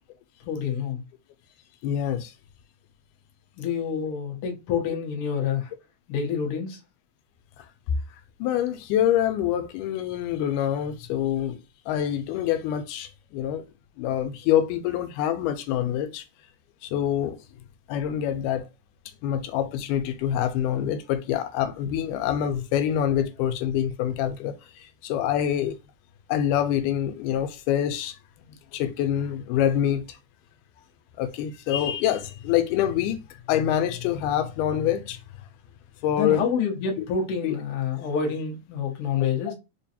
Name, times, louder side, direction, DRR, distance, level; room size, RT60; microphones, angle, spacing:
voice 1, 0.4-1.0 3.6-5.7 6.1-6.8 36.2-39.5, left 7 dB, 65° left, 1.5 m, -27 dB
voice 2, 1.8-2.3 7.6-7.7 8.4-11.6 11.9-13.7 14.0-16.3 16.8-17.4 17.9-18.7 19.2-25.8 26.3-28.2 28.7-30.2 31.2-33.2 33.5-35.2 36.0-36.4 37.0-37.1 37.4-37.6 39.2-39.3, left 10 dB, 90° left, 2.1 m, -26 dB
4.9 x 2.2 x 2.8 m
omnidirectional pair, 3.6 m